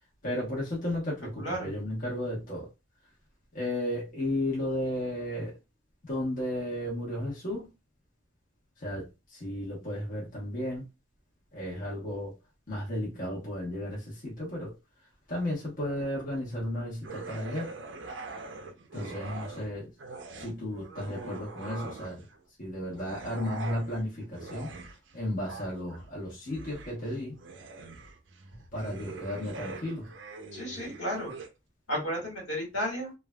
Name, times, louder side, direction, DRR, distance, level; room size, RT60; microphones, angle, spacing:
voice 1, 0.2-2.7 3.5-5.6 6.0-7.7 8.8-10.8 11.5-12.3 12.7-14.7 15.3-17.7 18.9-19.9 20.4-22.2 22.6-24.7 25.1-27.4 28.7-30.1, left 1 dB, 45° left, 1.0 m, -34 dB
voice 2, 1.4-1.7 30.5-31.4 31.9-33.1, equal, 75° left, 1.6 m, -33 dB
sound 1, 17.0-19.7 20.0-22.4 22.9-31.5, right 3 dB, 65° right, 0.5 m, -43 dB
3.2 x 2.3 x 2.2 m
head